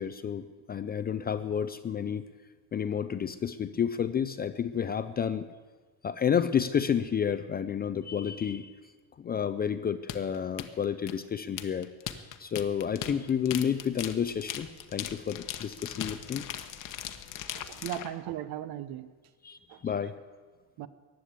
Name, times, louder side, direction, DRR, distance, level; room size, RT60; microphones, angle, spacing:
voice 1, 0.0-2.2 2.7-5.5 6.0-8.7 9.2-11.9 12.4-16.4 19.4-20.1, left 8 dB, 25° left, 12 dB, 0.4 m, -30 dB
sound 1, 10.1-18.1, left 11 dB, 50° left, 1.0 m, -39 dB
voice 2, 17.5-19.1 19.7-20.0 20.8-20.9, right 11 dB, 65° right, 13 dB, 1.0 m, -38 dB
15.0 x 10.0 x 8.2 m, 1.4 s
cardioid pair, 160°, 40 cm